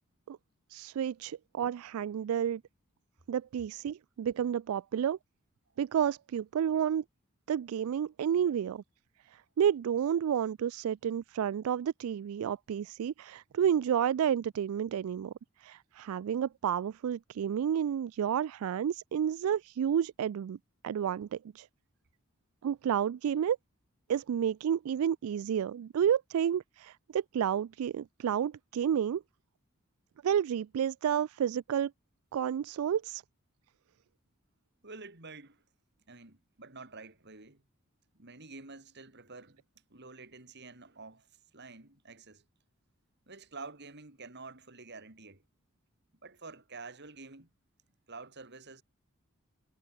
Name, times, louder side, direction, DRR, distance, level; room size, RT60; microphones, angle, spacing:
voice 1, 0.7-2.6 3.3-5.2 5.8-7.0 7.5-8.8 9.3-15.3 15.6-20.6 20.8-21.7 22.6-23.6 24.1-29.2 30.2-31.9 32.3-33.2, right 9 dB, 80° right, 0.3 m, -30 dB
voice 2, 34.8-35.6 36.1-37.6 38.1-39.6 39.9-41.3 41.5-42.4 43.3-45.4 46.2-47.5 48.1-48.8, right 3 dB, 55° right, 3.8 m, -48 dB
head